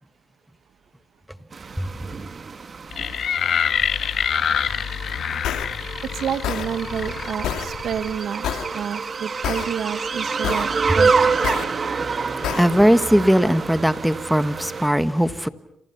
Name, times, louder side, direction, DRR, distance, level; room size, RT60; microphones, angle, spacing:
sound 1, 1.5-14.9, right 5 dB, 40° right, 1.7 m, -27 dB
sound 2, 2.9-8.2, left 8 dB, 60° left, 1.2 m, -26 dB
sound 3, 5.4-5.6 6.4-6.7 7.4-7.7 8.4-8.7 9.4-9.6 10.4-10.7 11.4-11.6 12.4-12.6, left 10 dB, 85° left, 2.4 m, -26 dB
voice 1, 6.1-8.4 8.7-10.7 11.0-11.4, right 8 dB, 65° right, 1.9 m, -29 dB
voice 2, 12.5-15.5, equal, ahead, 1.4 m, -19 dB
28.0 x 27.5 x 5.8 m
cardioid pair, 95°, 0 cm